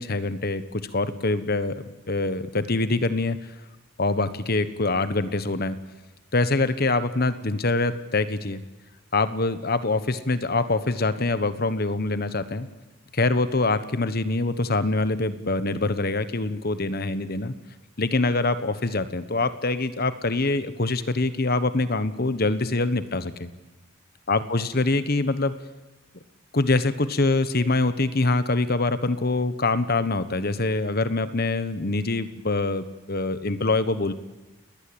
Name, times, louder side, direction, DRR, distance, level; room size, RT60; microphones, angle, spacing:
voice 1, 0.0-3.5 4.0-5.8 6.3-8.6 9.1-12.7 13.1-17.5 18.0-23.5 24.3-25.5 26.5-34.1, left 2 dB, 45° left, 12 dB, 1.2 m, -24 dB
29.5 x 20.5 x 8.7 m, 1.1 s
head